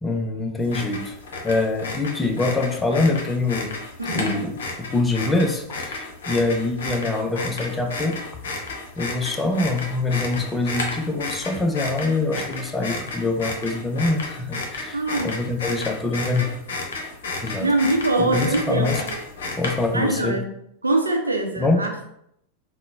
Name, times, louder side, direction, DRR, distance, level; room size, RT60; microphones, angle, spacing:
voice 1, 0.0-1.2 1.4-3.8 4.1-8.4 9.0-16.5 17.4-17.7 18.2-19.0 19.5-20.4 21.6-21.9, left 2 dB, 10° left, 3 dB, 0.5 m, -24 dB
sound 1, 0.6-20.1, left 3 dB, 60° left, 0.7 m, -32 dB
voice 2, 4.0-4.4 14.9-15.3 17.6-19.0 19.9-20.5 20.8-22.1, right 2 dB, 80° right, 2 dB, 0.6 m, -23 dB
3.7 x 2.1 x 3.4 m, 0.74 s
figure-of-eight pair, 90°, 0 cm